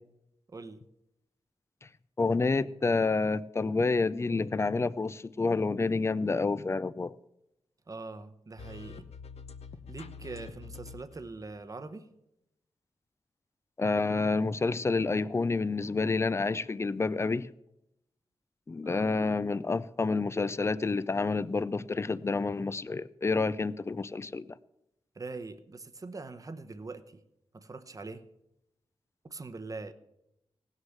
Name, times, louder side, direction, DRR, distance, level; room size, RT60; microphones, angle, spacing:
voice 1, 0.5-0.8 7.9-9.1 9.9-12.1 18.8-19.1 25.1-27.2 27.5-28.2 29.2-29.9, right 3 dB, 30° right, 0.9 m, -42 dB
voice 2, 2.2-7.1 13.8-17.5 18.7-24.5, left 3 dB, 25° left, 0.4 m, -29 dB
sound 1, 8.6-11.3, left 5 dB, 70° left, 0.8 m, -46 dB
17.5 x 6.5 x 7.3 m
wide cardioid pair, 125°, 11 cm